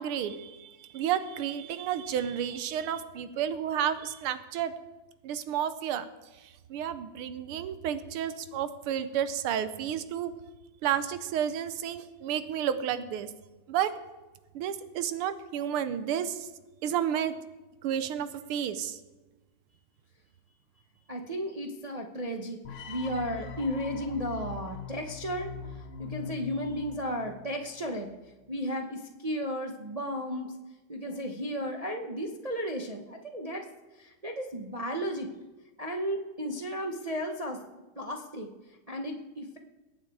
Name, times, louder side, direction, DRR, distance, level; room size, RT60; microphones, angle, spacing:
voice 1, 0.0-4.7 5.2-6.1 6.4-10.3 10.8-13.3 13.7-13.9 14.5-16.5 16.8-17.3 17.8-19.0, right 9 dB, 85° right, 12 dB, 1.7 m, -31 dB
voice 2, 21.1-28.1 28.5-30.5 30.9-33.7 34.0-35.3 35.8-37.6 38.0-38.5 38.9-39.6, equal, 50° right, 3 dB, 0.4 m, -34 dB
sound 1, 22.6-27.7, left 5 dB, 80° left, 1.9 m, -42 dB
21.5 x 8.4 x 4.7 m, 1.2 s
omnidirectional pair, 2.4 m